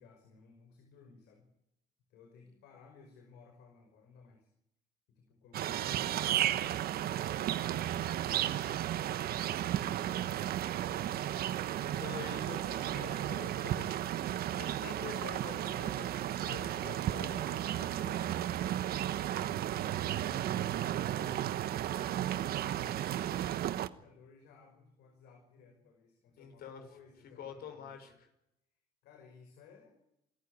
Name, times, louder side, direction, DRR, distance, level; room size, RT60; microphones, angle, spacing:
voice 1, 0.0-1.5 2.1-4.5 5.1-8.8 9.6-11.2 18.8-21.7 22.2-23.0 23.4-28.2 29.0-29.9, left 5 dB, 85° left, 4 dB, 5.5 m, -59 dB
sound 1, 5.5-23.9, right 12 dB, 65° right, 1.2 m, -34 dB
voice 2, 11.5-18.4 26.4-26.8 27.4-28.3, left 7 dB, 65° left, 7 dB, 6.1 m, -48 dB
27.5 x 14.5 x 9.7 m, 0.82 s
cardioid pair, 110°, 17 cm